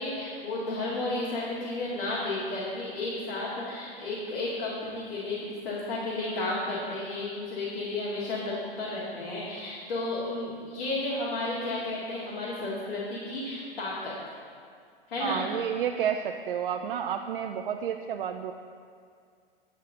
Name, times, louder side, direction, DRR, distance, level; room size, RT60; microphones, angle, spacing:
voice 1, 0.0-14.1 15.1-15.4, left 2 dB, 70° left, -8 dB, 2.1 m, -32 dB
voice 2, 15.2-18.5, right 8 dB, 65° right, 5 dB, 0.5 m, -30 dB
9.9 x 7.4 x 3.7 m, 2.2 s
figure-of-eight pair, 100°, 29 cm